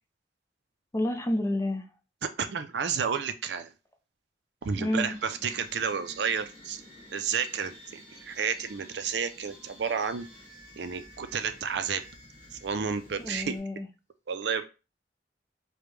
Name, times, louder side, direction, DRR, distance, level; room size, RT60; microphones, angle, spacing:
voice 1, 0.9-1.9 4.8-5.1 13.2-13.9, left 1 dB, 15° left, 6 dB, 0.4 m, -29 dB
voice 2, 2.2-3.7 4.6-6.8 7.1-10.3 10.8-12.0 12.5-13.6 14.3-14.6, right 6 dB, 65° right, 9 dB, 0.4 m, -31 dB
sound 1, 4.6-13.6, equal, 10° right, 1.9 m, -51 dB
5.0 x 2.2 x 3.1 m, 0.31 s
head